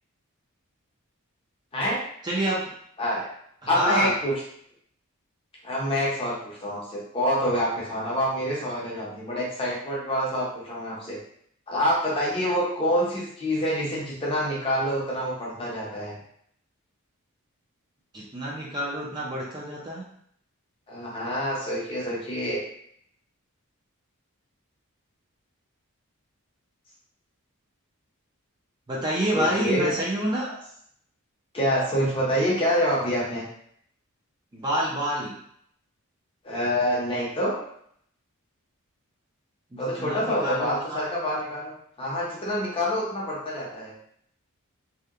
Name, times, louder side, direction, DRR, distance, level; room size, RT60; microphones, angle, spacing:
voice 1, 2.2-2.7 3.6-4.1 18.1-20.1 28.9-30.5 34.5-35.4 39.7-41.0, equal, 20° right, -5 dB, 0.4 m, -28 dB
voice 2, 3.0-3.3 3.7-4.3 5.6-11.2 11.7-16.2 20.9-22.6 29.3-29.9 31.5-33.4 36.4-37.6 39.8-43.9, equal, 25° left, -5 dB, 0.6 m, -26 dB
2.7 x 2.1 x 2.3 m, 0.67 s
head